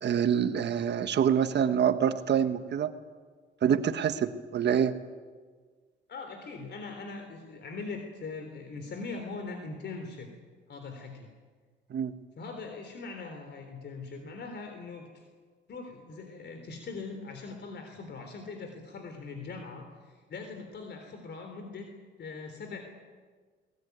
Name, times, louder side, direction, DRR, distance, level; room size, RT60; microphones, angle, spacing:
voice 1, 0.0-2.9 3.6-4.9 11.9-12.1, right 8 dB, 60° right, 10 dB, 1.5 m, -26 dB
voice 2, 6.1-10.3 10.7-11.3 12.4-15.2 15.7-21.9 22.2-22.9, left 4 dB, 60° left, 5 dB, 3.7 m, -41 dB
22.5 x 20.0 x 9.5 m, 1.5 s
cardioid pair, 90°, 20 cm